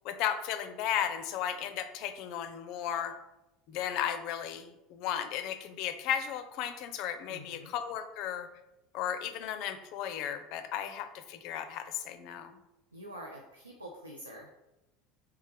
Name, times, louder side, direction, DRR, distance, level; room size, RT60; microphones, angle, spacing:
voice 1, 0.0-3.1 3.7-8.5 8.9-12.5, left 10 dB, 55° left, 9 dB, 0.4 m, -35 dB
voice 2, 7.3-7.7 12.9-14.5, right 1 dB, 90° right, -1 dB, 0.5 m, -46 dB
4.2 x 3.4 x 3.4 m, 0.96 s
figure-of-eight pair, 70°, 0 cm